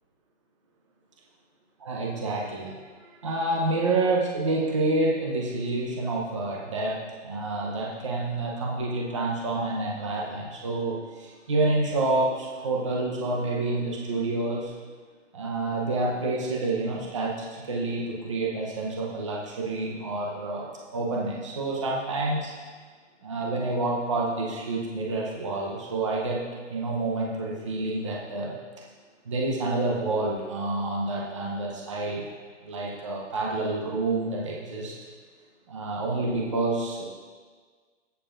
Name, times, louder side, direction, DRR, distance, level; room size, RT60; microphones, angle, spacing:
voice 1, 1.8-14.7 15.3-20.6 20.9-22.5 23.2-26.4 26.7-28.5 29.3-32.2 32.6-34.9 35.7-37.0, right 2 dB, 25° right, -3 dB, 0.8 m, -28 dB
16.0 x 7.1 x 2.5 m, 1.5 s
hypercardioid pair, 175°, 37 cm